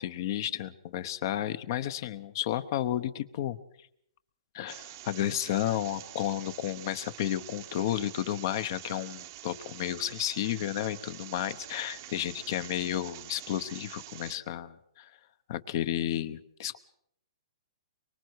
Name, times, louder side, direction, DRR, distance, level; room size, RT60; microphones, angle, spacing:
voice 1, 0.0-3.6 4.5-15.1 15.5-16.8, left 12 dB, 45° left, 14 dB, 0.9 m, -32 dB
sound 1, 4.7-14.3, right 14 dB, 40° right, 0.8 m, -46 dB
24.0 x 23.0 x 4.7 m, 0.71 s
hypercardioid pair, 160°, 3 cm